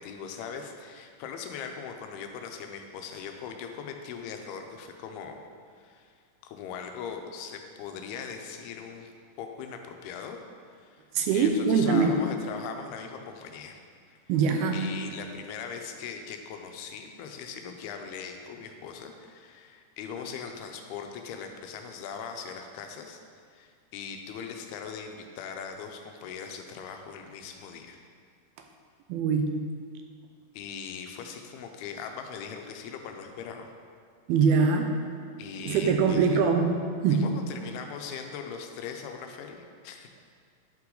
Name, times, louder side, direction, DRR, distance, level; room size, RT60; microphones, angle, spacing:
voice 1, 0.0-5.4 5.7-10.4 10.7-11.0 11.3-13.8 14.7-23.2 23.5-28.0 30.5-33.7 35.4-36.6 37.1-40.2, left 6 dB, 90° left, 5 dB, 2.6 m, -40 dB
voice 2, 11.1-12.2 14.3-14.9 29.1-29.5 34.3-34.9 35.6-37.3, right 5 dB, 85° right, 4 dB, 2.5 m, -23 dB
10.5 x 5.9 x 3.8 m, 2.1 s
omnidirectional pair, 4.4 m